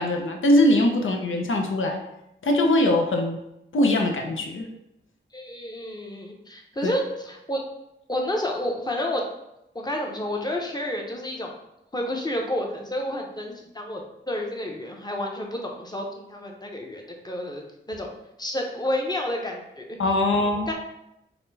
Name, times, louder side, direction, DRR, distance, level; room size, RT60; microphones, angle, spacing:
voice 1, 0.0-2.0 2.4-3.4 3.7-4.7 6.8-6.9 20.0-20.7, left 1 dB, 75° left, 3 dB, 0.6 m, -21 dB
voice 2, 5.3-7.6 8.1-9.2 9.7-11.5 11.9-14.0 14.3-20.0 20.7-20.8, left 1 dB, 20° left, 1 dB, 0.8 m, -30 dB
4.3 x 2.2 x 4.0 m, 0.85 s
cardioid pair, 50°, 20 cm